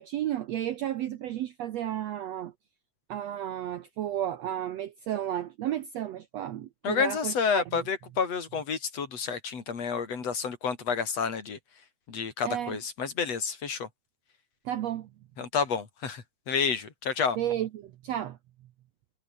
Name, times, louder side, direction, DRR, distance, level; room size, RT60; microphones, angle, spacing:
voice 1, 0.0-2.5 3.1-7.8 12.4-12.8 14.6-15.1 17.4-18.4, right 11 dB, 80° right, 1.5 m, -33 dB
voice 2, 6.8-11.6 12.1-13.9 15.4-17.4, left 6 dB, 45° left, 4.4 m, -30 dB
omnidirectional pair, 4.2 m